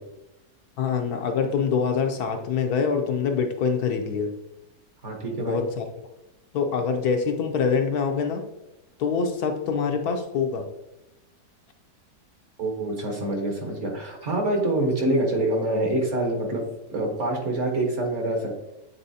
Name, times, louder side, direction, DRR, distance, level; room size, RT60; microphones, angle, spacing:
voice 1, 0.8-4.3 5.4-5.8 6.5-8.4 9.0-10.7, left 6 dB, 70° left, 4 dB, 1.1 m, -25 dB
voice 2, 5.0-5.6 12.6-16.6 16.9-18.5, right 1 dB, 45° right, 1 dB, 1.3 m, -26 dB
8.7 x 4.0 x 2.7 m, 0.94 s
omnidirectional pair, 1.8 m